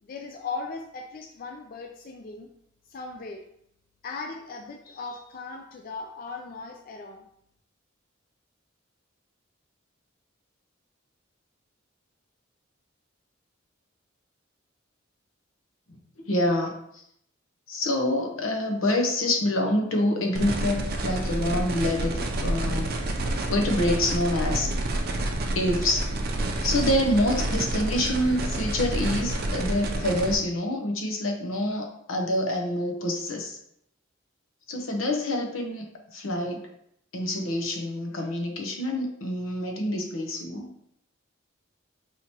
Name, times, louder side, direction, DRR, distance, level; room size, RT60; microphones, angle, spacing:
voice 1, 0.0-2.5 2.9-3.4 4.0-7.2, left 4 dB, 45° left, 3 dB, 0.3 m, -38 dB
voice 2, 16.2-17.0 17.7-22.9 23.5-24.7 25.5-26.1 26.6-33.6 34.7-35.9 36.1-36.6 37.1-40.7, left 1 dB, 85° left, 2 dB, 0.8 m, -26 dB
sound 1, 20.3-30.3, right 1 dB, 50° right, 0.5 m, -29 dB
4.7 x 2.9 x 2.9 m, 0.73 s
head